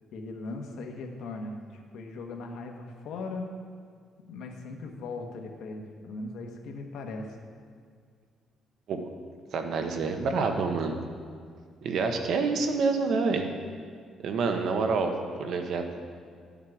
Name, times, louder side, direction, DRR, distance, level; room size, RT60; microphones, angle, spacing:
voice 1, 0.1-3.5 4.3-7.4, left 3 dB, 70° left, 3 dB, 1.2 m, -39 dB
voice 2, 9.5-11.0 11.8-13.5 14.2-16.0, right 4 dB, 55° right, 5 dB, 0.9 m, -27 dB
11.5 x 7.4 x 4.8 m, 2.1 s
cardioid pair, 155°, 0 cm